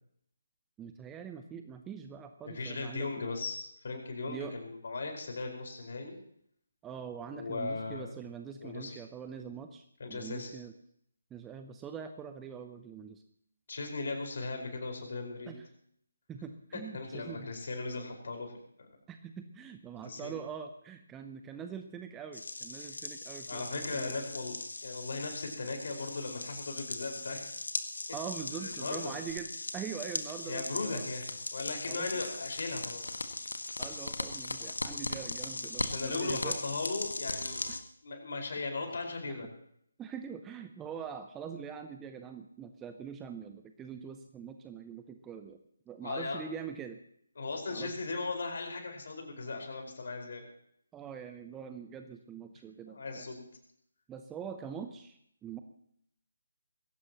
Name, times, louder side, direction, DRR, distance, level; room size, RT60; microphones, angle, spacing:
voice 1, 0.8-3.1 4.3-4.5 6.8-10.7 11.3-13.2 15.5-15.6 16.3-17.5 19.1-24.1 28.1-31.1 31.9-32.1 33.8-36.6 37.7-37.8 39.3-39.4 40.0-45.6 45.9-47.0 47.7-47.9 50.9-53.3 54.1-55.6, right 7 dB, 10° right, 7 dB, 0.7 m, -43 dB
voice 2, 2.4-6.2 7.3-8.2 8.6-9.0 10.0-10.5 13.7-15.6 16.7-18.5 18.8-18.9 20.0-20.4 23.5-24.5 24.8-27.5 28.5-29.1 30.4-33.2 35.8-37.6 38.0-39.5 46.0-46.4 47.4-50.5 52.9-53.5, left 3 dB, 50° left, 2 dB, 5.1 m, -38 dB
sound 1, 22.3-37.8, left 2 dB, 65° left, 1.7 m, -39 dB
21.5 x 17.5 x 3.0 m, 0.69 s
figure-of-eight pair, 145°, 0 cm